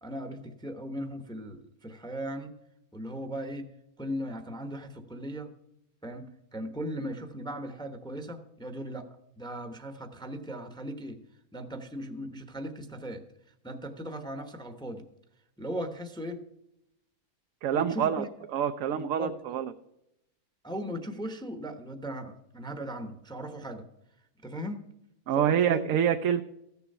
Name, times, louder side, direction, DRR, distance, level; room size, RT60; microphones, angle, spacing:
voice 1, 0.0-2.5 2.9-3.7 4.0-5.5 6.0-9.1 9.4-11.2 11.5-13.2 13.6-15.0 15.6-16.4 17.7-18.3 18.9-19.6 20.6-23.8 24.4-24.9 25.4-25.9, equal, 5° left, 7 dB, 0.8 m, -38 dB
voice 2, 17.6-18.2 18.5-19.7 25.3-26.4, right 9 dB, 70° right, 8 dB, 1.0 m, -26 dB
14.5 x 7.0 x 5.4 m, 0.82 s
omnidirectional pair, 1.5 m